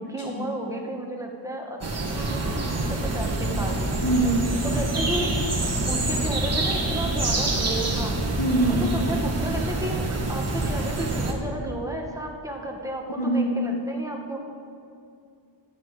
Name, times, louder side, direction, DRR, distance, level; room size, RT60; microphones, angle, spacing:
voice 1, 0.0-1.8 2.1-2.5 2.9-3.8 4.6-5.4 5.9-8.2 8.7-14.4, right 1 dB, 5° right, 0 dB, 1.3 m, -32 dB
sound 1, 1.8-11.3, right 2 dB, 30° right, 1.6 m, -26 dB
voice 2, 4.0-4.5 8.4-8.9 13.2-13.6, right 2 dB, 55° left, -2 dB, 1.5 m, -23 dB
13.0 x 5.9 x 7.9 m, 2.5 s
wide cardioid pair, 125°, 47 cm